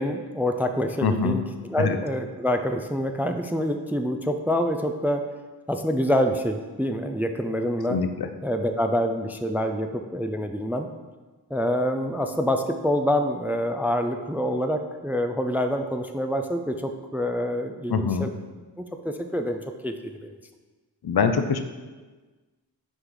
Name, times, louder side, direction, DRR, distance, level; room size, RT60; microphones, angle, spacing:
voice 1, 0.0-1.4 1.7-5.2 5.7-8.0 8.4-10.9 11.5-18.3 18.8-20.3, equal, 5° right, 6 dB, 0.3 m, -26 dB
voice 2, 1.0-1.4 1.8-2.0 7.9-8.3 17.9-18.3 21.0-21.6, left 5 dB, 65° left, 8 dB, 0.7 m, -23 dB
6.3 x 4.6 x 3.8 m, 1.3 s
cardioid pair, 60°, 41 cm